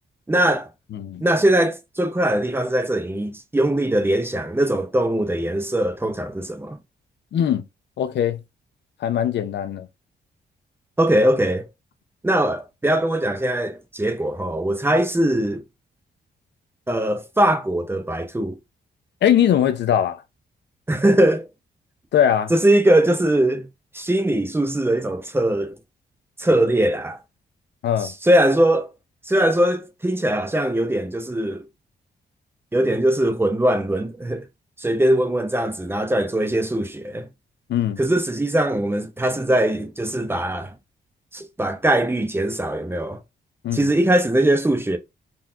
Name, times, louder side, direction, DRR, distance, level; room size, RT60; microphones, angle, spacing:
voice 1, 0.3-0.7 1.2-6.8 11.0-11.7 12.2-15.6 16.9-18.6 20.9-21.5 22.5-23.7 23.9-25.7 26.4-27.2 28.0-28.9 29.2-31.6 32.7-34.4 34.8-37.3 38.0-40.7 41.3-43.2 43.7-45.0, right 1 dB, 10° right, 0.6 m, -21 dB
voice 2, 0.9-1.2 7.3-7.6 8.0-8.4 9.0-9.9 19.2-20.2 22.1-22.5 27.8-28.1 37.7-38.0 43.6-43.9, left 9 dB, 75° left, 0.5 m, -20 dB
3.9 x 2.4 x 2.6 m
cardioid pair, 100°, 18 cm